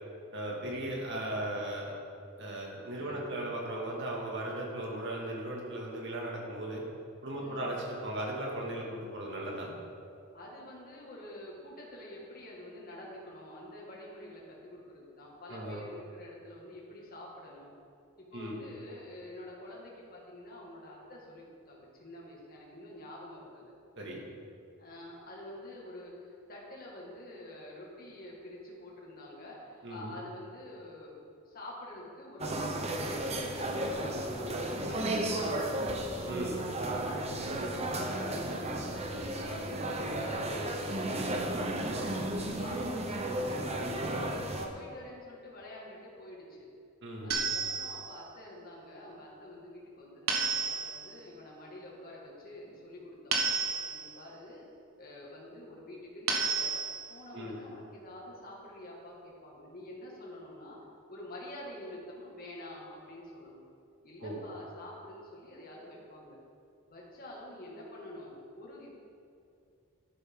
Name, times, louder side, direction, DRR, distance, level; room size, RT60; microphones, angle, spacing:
voice 1, 0.3-1.9 2.4-6.8 7.2-9.7 15.5-15.8 18.3-18.6 24.0-24.2 29.8-30.1 36.3-36.5 41.8-42.1 47.0-47.4 57.3-57.6 64.2-64.4, right 1 dB, 60° right, -2 dB, 2.2 m, -37 dB
voice 2, 3.0-3.3 7.3-7.8 10.3-17.7 18.2-23.7 24.8-32.6 33.0-35.8 36.5-41.1 42.5-46.7 47.2-53.5 53.9-54.7 55.0-56.7 57.1-60.8 61.1-63.6 64.0-66.4 66.9-68.9, left 1 dB, 45° left, -4 dB, 2.2 m, -48 dB
sound 1, 32.4-44.7, right 1 dB, 30° right, 0.9 m, -33 dB
sound 2, 47.3-48.2 50.3-51.1 53.3-54.2 56.3-57.2, right 5 dB, 80° right, 1.3 m, -32 dB
11.5 x 11.0 x 3.8 m, 2.5 s
head